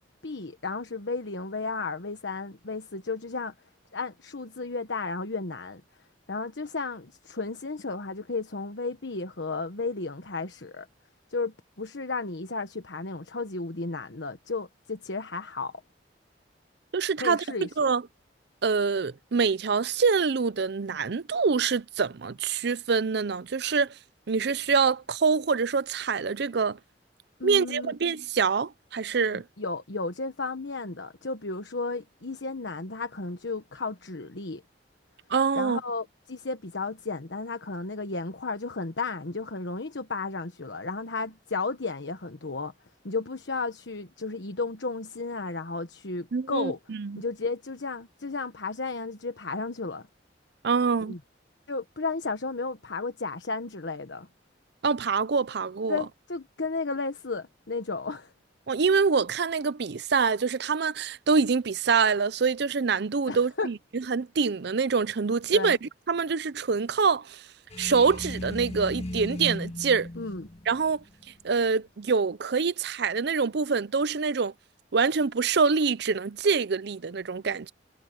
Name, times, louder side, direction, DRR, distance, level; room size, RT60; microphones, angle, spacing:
voice 1, 0.2-3.5 3.9-5.8 6.3-10.9 11.3-15.7 17.2-17.7 27.4-27.9 29.6-34.6 35.5-42.7 43.0-46.8 47.1-50.1 51.1-51.2 51.7-54.3 55.9-58.3 63.3-63.7 65.5-65.8 70.2-70.5, left 3 dB, 75° left, 1.2 m, -33 dB
voice 2, 16.9-17.4 17.8-18.0 18.6-23.9 24.3-26.8 27.4-29.4 35.3-35.8 46.3-47.2 50.6-51.1 54.8-56.0 58.7-67.4 67.8-70.1 70.7-71.0 71.4-74.5 74.9-77.7, right 5 dB, 65° right, 0.6 m, -25 dB
sound 1, 67.7-71.6, left 1 dB, 35° left, 2.1 m, -37 dB
head